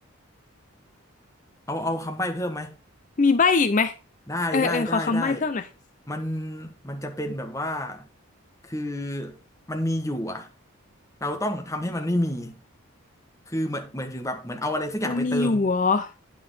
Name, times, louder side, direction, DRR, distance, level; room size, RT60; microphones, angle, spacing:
voice 1, 1.7-2.7 4.3-5.4 6.1-8.1 8.6-9.4 9.7-10.5 11.2-12.5 13.5-15.7, left 1 dB, 15° left, 1.4 m, -29 dB
voice 2, 3.2-3.9 4.5-5.7 15.1-16.1, left 4 dB, 35° left, 0.5 m, -22 dB
9.6 x 6.1 x 5.0 m
head